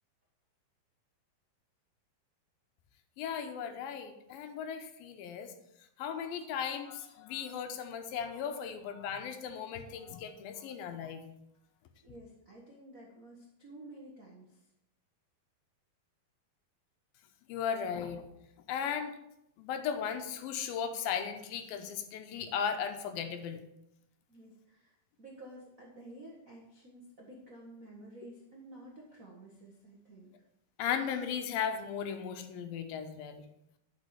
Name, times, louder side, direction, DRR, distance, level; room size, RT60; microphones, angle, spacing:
voice 1, 3.2-5.5 6.0-11.2 17.5-18.2 18.7-19.1 19.6-23.6 30.8-33.4, left 7 dB, 80° left, 7 dB, 2.6 m, -36 dB
voice 2, 12.0-14.7 24.3-30.3, right 1 dB, 70° right, -3 dB, 0.8 m, -52 dB
11.0 x 6.0 x 4.8 m, 0.82 s
omnidirectional pair, 4.2 m